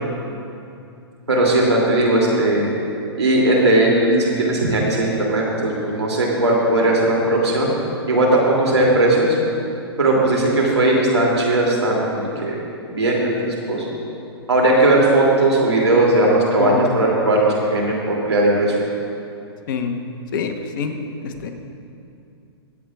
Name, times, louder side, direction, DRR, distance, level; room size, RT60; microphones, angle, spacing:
voice 1, 1.3-2.6 3.2-7.7 8.1-9.4 10.0-12.6 12.9-13.8 14.5-18.7, right 1 dB, 80° right, -3 dB, 2.7 m, -17 dB
voice 2, 19.7-20.0 20.3-21.5, left 5 dB, 50° left, 5 dB, 1.1 m, -26 dB
23.0 x 8.3 x 2.4 m, 2.6 s
figure-of-eight pair, 115°, 14 cm